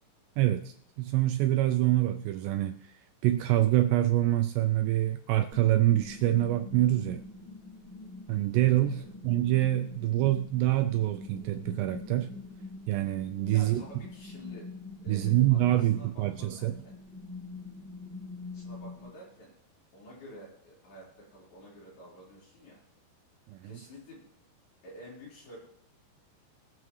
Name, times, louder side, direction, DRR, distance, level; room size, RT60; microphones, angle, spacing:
voice 1, 0.4-3.0 3.2-7.2 8.3-12.3 12.9-13.8 15.1-16.7 23.5-23.7, right 14 dB, 85° right, 2.5 m, -26 dB
sound 1, 5.5-19.1, left 3 dB, 10° left, 0.7 m, -44 dB
voice 2, 13.4-14.7 15.0-17.0 18.5-19.5 19.9-22.8 23.6-24.3 24.8-25.6, equal, 60° left, 6.4 m, -50 dB
21.5 x 7.7 x 3.2 m
omnidirectional pair, 5.2 m